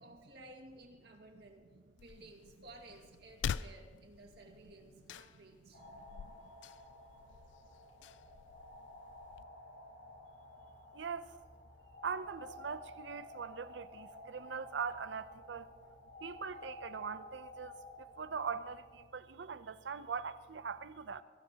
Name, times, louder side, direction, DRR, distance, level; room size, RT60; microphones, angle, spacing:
voice 1, 0.0-1.7 2.0-5.9 6.1-6.4 8.1-8.2 10.5-10.7, right 2 dB, 60° right, 2.0 m, -56 dB
sound 1, 2.0-9.4, left 7 dB, 90° left, 0.3 m, -46 dB
sound 2, 5.7-19.1, left 2 dB, 65° left, 4.5 m, -53 dB
voice 2, 5.9-6.3 10.9-11.4 12.0-15.7 16.2-17.7 18.2-21.2, right 6 dB, 90° right, 0.6 m, -41 dB
22.5 x 15.5 x 2.9 m
head